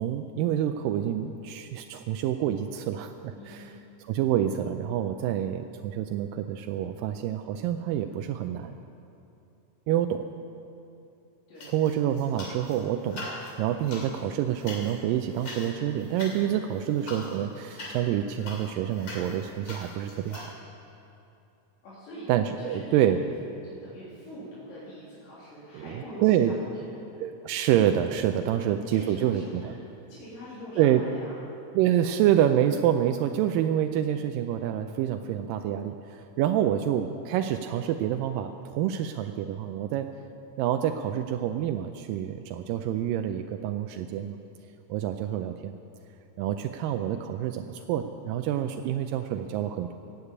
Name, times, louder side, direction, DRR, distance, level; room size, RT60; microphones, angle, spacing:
voice 1, 0.0-3.7 4.1-8.7 9.9-10.2 11.7-13.3 13.6-20.5 22.3-23.2 25.7-26.5 27.2-29.7 30.8-31.0 31.7-40.1 40.6-44.4 44.9-45.7 46.4-49.9, right 11 dB, 85° right, 7 dB, 2.2 m, -27 dB
voice 2, 3.3-3.7 11.5-11.8 21.8-22.3 22.6-23.1 23.6-27.0 28.5-29.8 30.1-31.3, equal, 90° left, -11 dB, 4.6 m, -44 dB
sound 1, 11.6-12.8 13.0-20.5, left 2 dB, 40° left, 3.1 m, -42 dB
15.0 x 8.2 x 8.6 m, 2.7 s
omnidirectional pair, 3.9 m